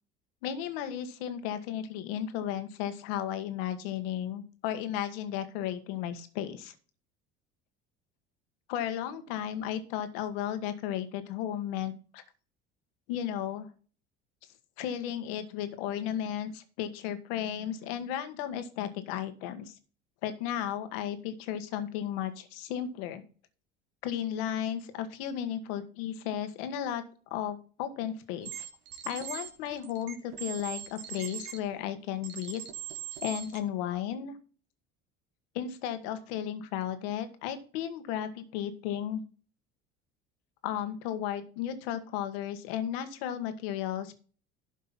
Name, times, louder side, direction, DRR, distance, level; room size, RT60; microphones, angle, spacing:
voice 1, 0.4-6.7 8.7-12.2 13.1-13.7 14.8-19.7 20.2-23.2 24.0-27.0 27.3-28.7 29.0-32.6 33.2-34.3 35.5-39.2 40.6-44.1, left 10 dB, 80° left, 10 dB, 1.6 m, -34 dB
sound 1, 28.4-31.6 32.2-33.6, right 10 dB, 80° right, 1.9 m, -41 dB
12.0 x 5.4 x 4.2 m, 0.39 s
supercardioid pair, 85°, 29 cm